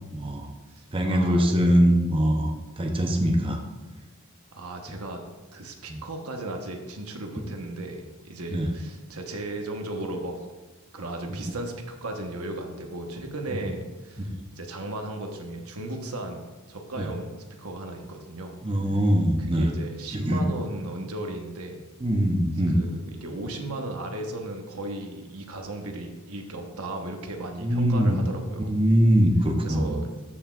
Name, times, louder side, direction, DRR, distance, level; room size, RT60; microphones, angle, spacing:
voice 1, 0.1-0.5 0.9-3.6 5.9-6.0 8.5-8.7 11.3-11.4 14.2-14.4 17.0-17.1 18.6-19.7 20.1-20.4 22.0-22.8 27.6-28.2 28.7-30.2, equal, 25° right, 2 dB, 0.7 m, -22 dB
voice 2, 0.7-1.5 4.5-5.2 5.5-10.4 10.9-18.6 19.4-21.8 22.7-28.7 29.6-30.2, right 2 dB, 80° right, 3 dB, 1.1 m, -36 dB
13.5 x 6.1 x 2.4 m, 1.2 s
head